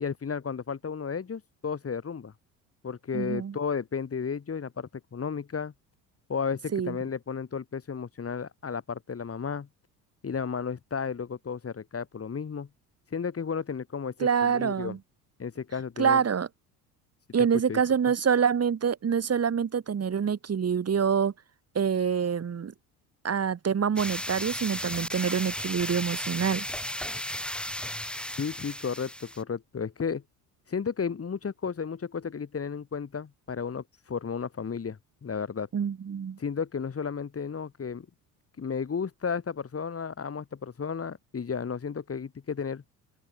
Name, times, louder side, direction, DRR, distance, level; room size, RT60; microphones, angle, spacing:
voice 1, 0.0-2.3 2.8-5.7 6.3-9.7 10.2-12.7 13.1-15.0 15.4-16.2 17.4-17.8 28.4-30.2 30.7-35.7 36.4-38.1 38.6-42.8, left 6 dB, 30° left, 5.8 m, -33 dB
voice 2, 3.1-3.5 6.7-7.0 14.2-15.0 16.0-16.5 17.3-21.3 21.8-22.7 23.2-26.7 35.7-36.4, right 7 dB, 30° right, 3.7 m, -26 dB
sound 1, 24.0-29.4, equal, ahead, 5.8 m, -35 dB
open air
figure-of-eight pair, 60°, 47 cm